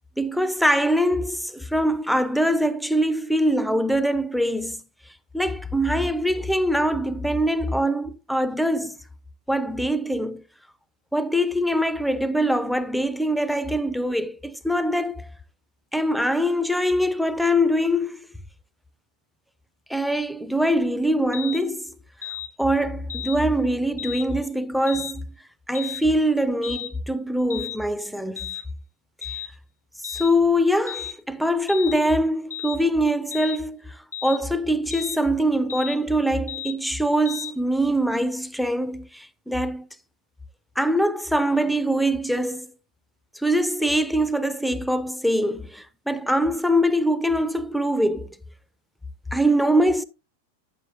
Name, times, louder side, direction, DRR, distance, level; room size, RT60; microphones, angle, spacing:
voice 1, 0.2-4.8 5.3-9.0 9.5-10.4 11.1-15.3 15.9-18.2 19.9-21.9 22.6-25.3 25.7-28.6 30.0-39.9 40.8-42.7 43.4-48.3 49.3-50.0, equal, ahead, 0.4 m, -23 dB
sound 1, 21.3-21.6 22.2-22.5 23.1-23.4 24.0-24.3 24.9-25.1 25.7-26.0 26.6-26.9 27.5-27.8 28.4-28.6 29.2-29.5 30.0-30.3 30.9-31.1 31.7-32.0 32.5-32.8 33.3-33.6 34.1-34.4 34.9-35.2 35.7-36.0 36.5-36.8 37.2-37.5, left 12 dB, 80° left, 0.7 m, -34 dB
9.2 x 7.5 x 2.6 m
figure-of-eight pair, 90°, 0 cm